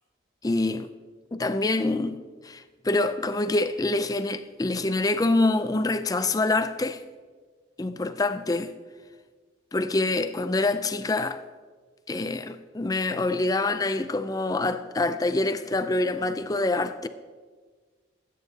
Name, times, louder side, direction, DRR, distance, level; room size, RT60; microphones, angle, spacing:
voice 1, 0.4-0.9 1.3-7.0 7.8-8.7 9.7-11.4 12.1-17.1, left 2 dB, 20° left, 0.4 m, -26 dB
21.0 x 9.2 x 2.8 m
head